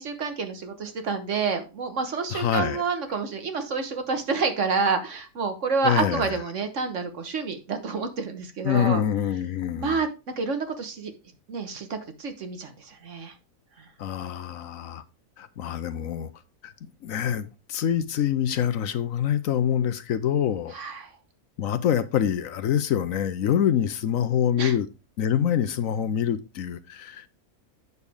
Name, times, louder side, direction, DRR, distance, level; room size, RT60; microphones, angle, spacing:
voice 1, 0.0-9.0 9.8-10.1 10.4-11.1 11.5-13.3 20.7-21.1 24.6-24.7, right 4 dB, 55° right, 1.5 m, -28 dB
voice 2, 2.3-2.8 5.8-6.3 8.6-10.0 14.0-15.0 15.4-16.3 16.6-16.7 17.0-20.8 21.6-24.9 25.2-27.3, left 9 dB, 70° left, 1.1 m, -25 dB
8.2 x 6.7 x 3.5 m
omnidirectional pair, 1.5 m